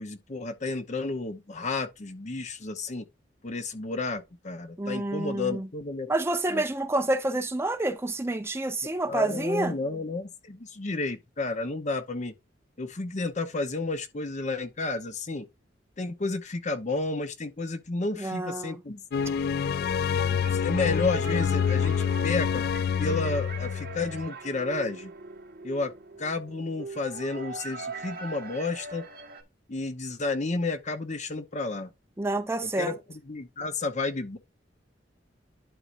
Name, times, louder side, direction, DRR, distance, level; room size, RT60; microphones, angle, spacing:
voice 1, 0.0-3.0 3.4-6.1 6.5-6.6 9.1-12.3 12.8-15.5 16.0-19.0 20.1-22.0 22.2-22.6 23.0-25.1 25.6-25.9 26.2-29.0 29.7-31.9 32.6-34.4, left 3 dB, 40° left, 0.9 m, -31 dB
voice 2, 4.8-5.7 6.1-9.7 18.2-18.8 32.2-32.9, right 2 dB, 15° right, 0.7 m, -28 dB
sound 1, 19.1-24.3, left 7 dB, 55° left, 0.3 m, -27 dB
sound 2, 20.2-29.4, right 4 dB, 55° right, 1.7 m, -42 dB
11.5 x 4.8 x 2.5 m
head